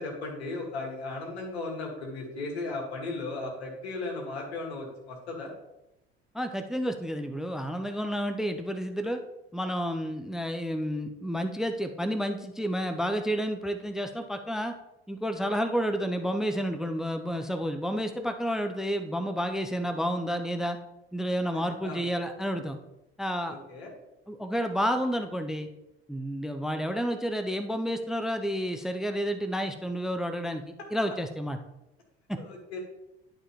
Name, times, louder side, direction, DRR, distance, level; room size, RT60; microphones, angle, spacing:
voice 1, 0.0-5.5 21.8-22.1 23.5-23.9 32.4-32.8, left 3 dB, 75° left, 0 dB, 1.9 m, -36 dB
voice 2, 6.3-9.2 9.5-14.7 15.1-20.8 21.1-22.8 23.2-23.6 24.3-25.7 26.1-31.6 32.3-32.4, equal, ahead, 7 dB, 0.6 m, -30 dB
11.0 x 4.9 x 3.0 m, 0.92 s
figure-of-eight pair, 55°, 32 cm